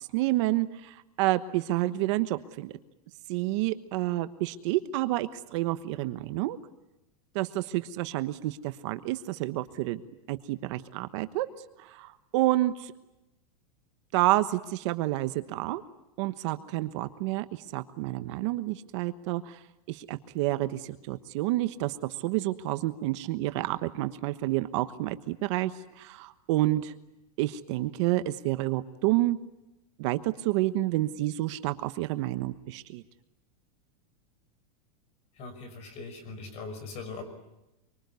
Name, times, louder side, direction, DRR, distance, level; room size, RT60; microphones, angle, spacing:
voice 1, 0.0-2.8 3.3-6.6 7.3-10.0 10.3-11.5 11.8-12.9 14.1-15.8 16.2-19.6 19.9-26.9 27.4-29.4 30.0-33.0, right 16 dB, 50° right, 11 dB, 1.2 m, -29 dB
voice 2, 35.4-37.2, left 4 dB, 35° left, 10 dB, 5.7 m, -40 dB
25.5 x 24.5 x 9.5 m, 0.93 s
supercardioid pair, 155°, 20 cm